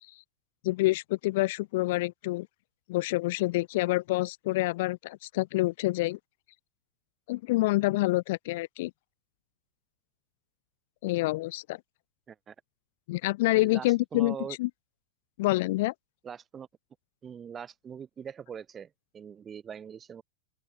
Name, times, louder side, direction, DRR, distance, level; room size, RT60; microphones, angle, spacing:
voice 1, 0.6-2.5 2.9-6.2 7.3-8.9 11.0-11.8 13.1-14.7 15.4-15.9, left 20 dB, 50° left, 0.3 m, -27 dB
voice 2, 13.5-14.6 16.2-16.7 17.2-20.2, right 7 dB, 20° right, 1.8 m, -42 dB
open air
figure-of-eight pair, 90°, 0 cm